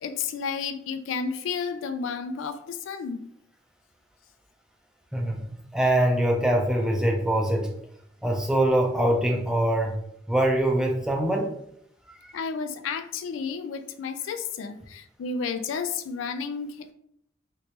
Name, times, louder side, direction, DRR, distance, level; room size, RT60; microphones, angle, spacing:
voice 1, 0.0-3.3 12.3-16.9, left 5 dB, 90° left, 0.3 m, -32 dB
voice 2, 5.1-7.7 8.2-9.9 10.3-11.5 12.2-12.3, right 1 dB, 5° right, 0.4 m, -23 dB
3.1 x 3.1 x 2.8 m
head